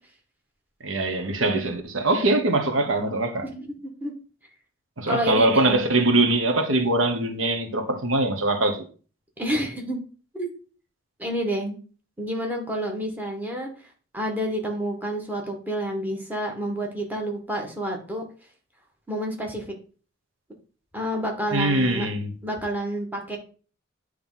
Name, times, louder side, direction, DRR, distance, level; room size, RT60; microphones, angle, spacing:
voice 1, 0.8-3.4 5.0-8.9 21.5-22.3, right 2 dB, 80° right, 1.2 m, -22 dB
voice 2, 3.4-4.1 5.1-5.8 9.4-10.0 10.3-10.5 11.2-11.8 12.2-13.7 14.1-18.2 19.1-19.6 20.9-22.1 22.4-23.4, equal, 10° right, 1.5 m, -29 dB
9.2 x 3.3 x 5.6 m
head